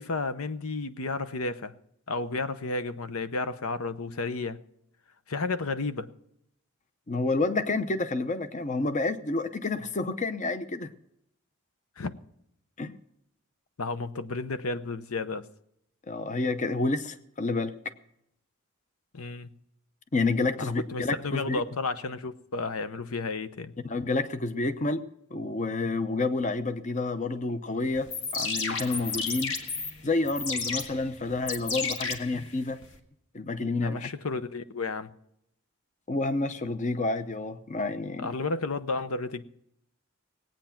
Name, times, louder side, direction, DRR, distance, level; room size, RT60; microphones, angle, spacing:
voice 1, 0.0-1.7 2.1-4.6 5.3-6.1 12.0-12.1 13.8-15.5 19.1-19.5 20.6-23.7 33.8-35.1 38.2-39.4, left 3 dB, 85° left, 0.8 m, -32 dB
voice 2, 7.1-10.9 12.8-12.9 16.1-17.8 20.1-21.6 23.8-25.0 25.3-29.5 30.0-32.8 33.3-34.1 36.1-38.3, left 3 dB, 35° left, 0.7 m, -29 dB
sound 1, 28.0-33.0, left 4 dB, 70° left, 1.8 m, -33 dB
18.5 x 9.0 x 5.9 m
head